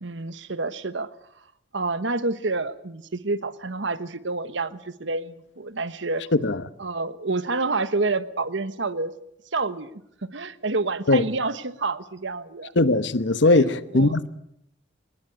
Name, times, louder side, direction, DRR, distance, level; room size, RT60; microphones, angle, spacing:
voice 1, 0.0-1.1 1.7-6.2 6.8-9.1 9.5-9.9 10.2-12.7 13.4-14.1, right 3 dB, 75° right, 1.2 m, -28 dB
voice 2, 12.8-14.3, left 2 dB, 70° left, 1.1 m, -19 dB
23.5 x 20.0 x 8.2 m
head